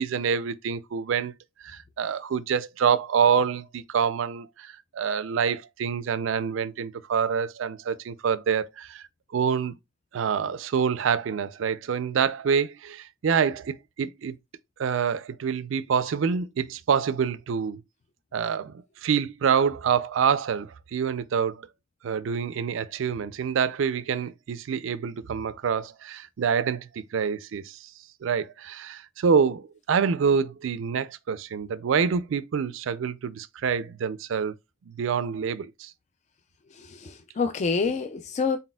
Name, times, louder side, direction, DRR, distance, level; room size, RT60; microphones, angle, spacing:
voice 1, 0.0-1.3 1.6-9.0 9.3-9.7 10.1-14.3 14.8-17.8 18.3-21.7 22.0-27.9 28.2-34.5 34.9-35.9, right 6 dB, 70° right, 0.4 m, -26 dB
voice 2, 36.7-38.6, left 4 dB, 35° left, 0.3 m, -27 dB
4.1 x 4.0 x 2.2 m
head